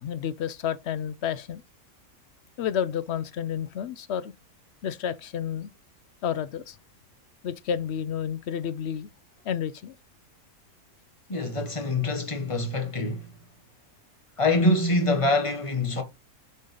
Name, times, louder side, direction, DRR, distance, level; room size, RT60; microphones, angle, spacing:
voice 1, 0.0-1.6 2.6-4.3 4.8-5.7 6.2-6.8 7.4-9.1 9.4-9.9 11.6-11.7, left 8 dB, 65° left, 0.7 m, -30 dB
voice 2, 11.3-13.2 14.4-16.0, left 2 dB, 20° left, 1.3 m, -25 dB
6.4 x 3.8 x 5.4 m
omnidirectional pair, 1.6 m